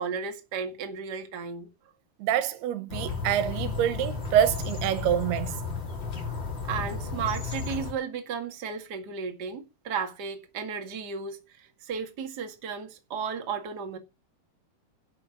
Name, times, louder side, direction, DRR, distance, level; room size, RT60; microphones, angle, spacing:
voice 1, 0.0-1.7 6.6-14.0, right 6 dB, 35° right, 1.9 m, -34 dB
voice 2, 2.2-5.6, right 10 dB, 85° right, 3.2 m, -26 dB
sound 1, 2.9-7.9, left 5 dB, 30° left, 3.8 m, -33 dB
11.5 x 7.9 x 8.5 m
omnidirectional pair, 4.4 m